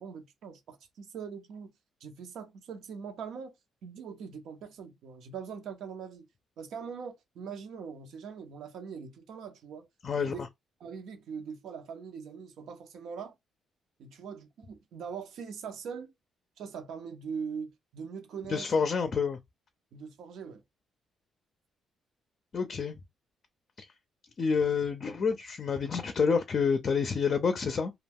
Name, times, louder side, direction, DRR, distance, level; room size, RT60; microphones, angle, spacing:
voice 1, 0.0-1.7 2.0-3.5 3.8-6.3 6.6-9.9 10.1-10.5 10.8-13.3 14.0-16.1 16.6-18.9 19.9-20.6, right 6 dB, 75° right, 0.7 m, -42 dB
voice 2, 10.0-10.5 18.5-19.4 22.5-22.9 23.8-23.9 24.4-27.9, left 5 dB, 45° left, 0.4 m, -28 dB
2.3 x 2.2 x 3.4 m
cardioid pair, 90°, 0 cm